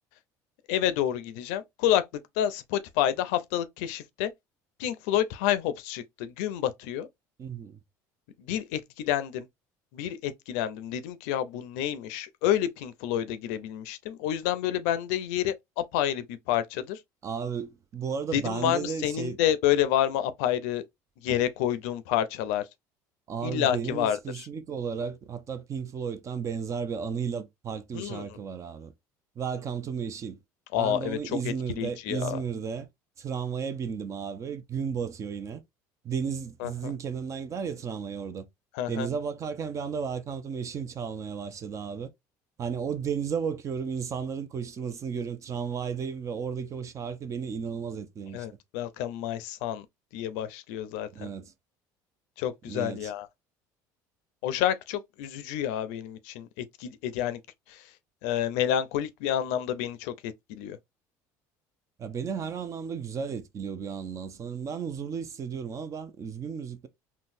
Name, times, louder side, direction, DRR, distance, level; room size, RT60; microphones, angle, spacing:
voice 1, 0.7-2.0 2.4-4.3 4.8-7.1 8.4-9.5 9.9-17.0 18.3-20.8 21.2-22.6 23.4-24.5 27.9-28.2 30.7-32.4 36.6-36.9 38.7-39.1 48.3-49.9 50.1-51.3 52.4-53.3 54.4-57.4 57.7-57.8 58.2-60.8, left 11 dB, 85° left, 0.5 m, -29 dB
voice 2, 7.4-7.8 17.2-19.4 23.3-28.9 29.4-30.4 30.7-32.9 33.2-35.6 36.0-38.5 38.9-42.1 42.6-48.5 51.1-51.5 52.6-53.1 62.0-66.9, right 6 dB, 40° right, 0.6 m, -34 dB
3.8 x 2.2 x 2.6 m
supercardioid pair, 105°, 8 cm